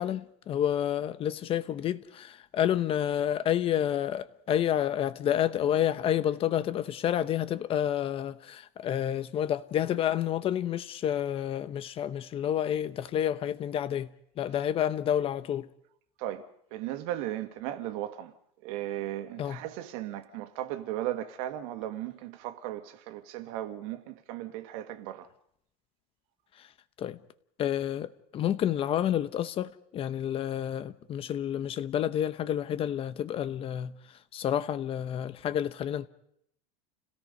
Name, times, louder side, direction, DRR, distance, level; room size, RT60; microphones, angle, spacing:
voice 1, 0.0-14.1 14.4-15.7 19.4-19.6 27.0-27.2 27.6-33.9 34.3-36.1, left 10 dB, 30° left, 0.8 m, -29 dB
voice 2, 16.2-18.3 18.6-25.3, right 13 dB, 65° right, 2.1 m, -36 dB
29.5 x 17.0 x 5.3 m
supercardioid pair, 150°, 19 cm